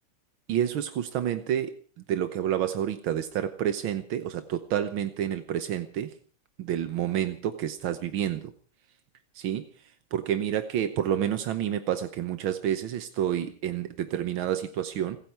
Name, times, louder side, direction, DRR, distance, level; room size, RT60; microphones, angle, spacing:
voice 1, 0.5-1.8 2.1-6.1 6.6-8.5 9.4-15.2, right 10 dB, 85° right, 10 dB, 1.8 m, -29 dB
29.5 x 10.5 x 4.6 m, 0.39 s
omnidirectional pair, 2.2 m